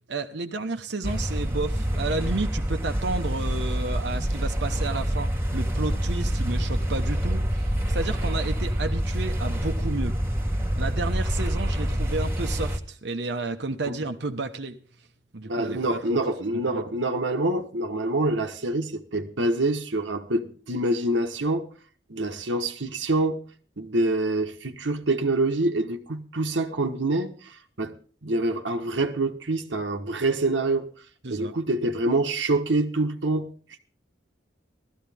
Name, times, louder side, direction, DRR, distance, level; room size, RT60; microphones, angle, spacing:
voice 1, 0.1-10.1 10.8-14.8 15.3-16.2 16.7-16.8 31.2-31.5, right 3 dB, 65° right, 1.0 m, -31 dB
sound 1, 1.0-12.8, equal, 15° right, 1.4 m, -26 dB
voice 2, 15.4-21.7 22.1-23.4 23.8-27.9 28.2-30.9 31.3-33.5, right 2 dB, 90° right, 1.3 m, -26 dB
16.0 x 13.5 x 3.5 m
head